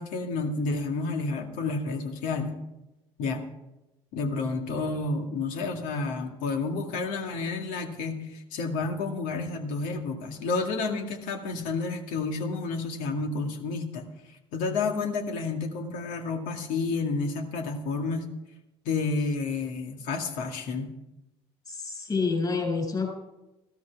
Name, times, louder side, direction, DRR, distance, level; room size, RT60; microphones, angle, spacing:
voice 1, 0.0-2.5 3.2-3.4 4.1-18.3 18.9-20.9, left 3 dB, 70° left, 4 dB, 2.1 m, -30 dB
voice 2, 21.6-23.1, left 4 dB, 30° left, -1 dB, 6.6 m, -28 dB
14.5 x 13.0 x 4.7 m, 0.97 s
hypercardioid pair, 65°, 14 cm